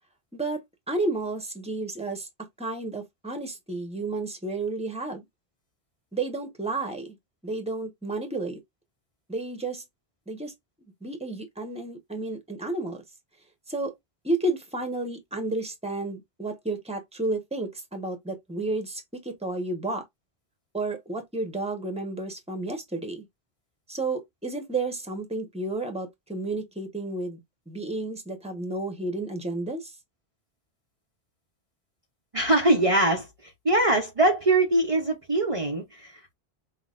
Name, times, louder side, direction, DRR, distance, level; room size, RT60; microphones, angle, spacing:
voice 1, 0.3-2.3 2.6-5.2 6.1-7.1 7.4-8.6 9.3-9.8 10.3-10.5 11.0-13.0 13.7-13.9 14.2-20.0 20.7-23.2 23.9-27.4 27.7-30.0, right 2 dB, 5° right, 1.1 m, -31 dB
voice 2, 32.3-36.1, right 2 dB, 35° right, 0.9 m, -23 dB
5.4 x 2.8 x 2.5 m
omnidirectional pair, 1.0 m